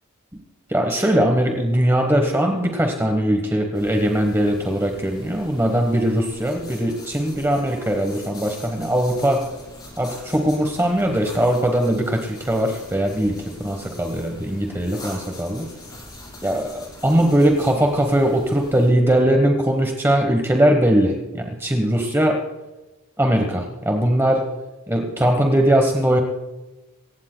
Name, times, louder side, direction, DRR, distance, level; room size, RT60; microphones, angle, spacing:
voice 1, 0.7-9.5 10.0-15.7 16.4-22.4 23.2-24.5 24.9-26.2, right 1 dB, 10° right, 3 dB, 1.1 m, -20 dB
sound 1, 3.7-18.9, left 1 dB, 20° left, 5.0 m, -42 dB
26.0 x 15.5 x 2.2 m, 1.1 s
head